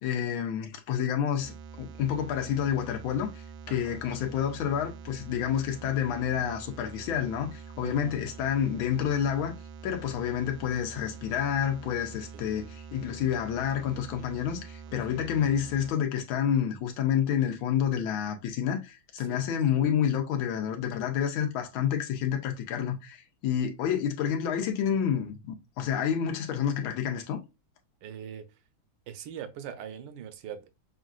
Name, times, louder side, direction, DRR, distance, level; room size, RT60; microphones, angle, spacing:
voice 1, 0.0-9.5 9.8-27.4, left 9 dB, 85° left, 1.5 m, -29 dB
sound 1, 1.4-15.9, right 5 dB, 90° right, 1.4 m, -45 dB
voice 2, 3.7-4.0 7.8-8.2 12.3-12.4 15.1-15.3 19.2-19.5 28.0-28.4 29.1-30.7, right 8 dB, 70° right, 1.2 m, -42 dB
6.0 x 2.5 x 2.3 m
omnidirectional pair, 2.2 m